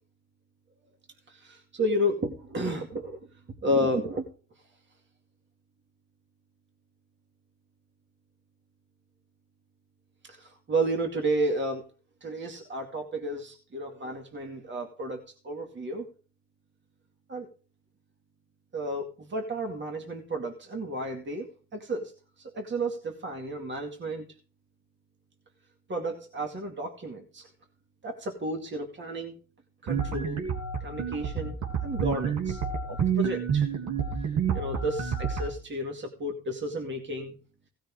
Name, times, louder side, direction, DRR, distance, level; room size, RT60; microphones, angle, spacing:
voice 1, 1.3-3.2 3.6-4.2 10.3-11.8 12.2-16.1 17.3-17.5 18.7-21.5 21.7-24.3 25.9-27.5 28.0-29.4 29.8-30.4 30.8-32.6 32.9-33.7 34.5-37.3, right 1 dB, 40° right, 2 dB, 2.5 m, -32 dB
sound 1, 29.9-35.5, right 7 dB, 70° right, 3.3 m, -29 dB
16.5 x 6.3 x 5.0 m, 0.36 s
cardioid pair, 90°, 30 cm